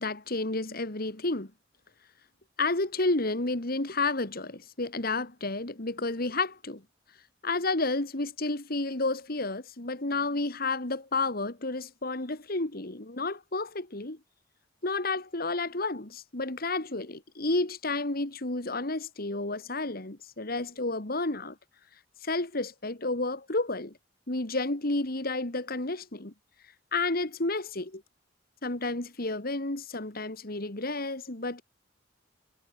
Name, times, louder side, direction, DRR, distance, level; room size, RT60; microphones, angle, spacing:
voice 1, 0.0-1.5 2.6-6.8 7.4-14.2 14.8-21.6 22.2-23.9 24.3-26.3 26.9-28.0 28.6-31.6, left 2 dB, 50° left, 2.3 m, -31 dB
head